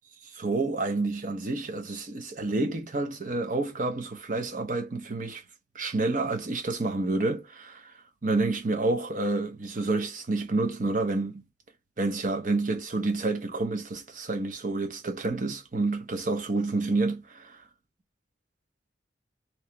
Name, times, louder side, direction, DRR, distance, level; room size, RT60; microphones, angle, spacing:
voice 1, 0.3-5.4 5.7-7.9 8.2-11.4 12.0-17.6, right 2 dB, 45° right, 0.8 m, -29 dB
3.1 x 2.9 x 3.2 m
head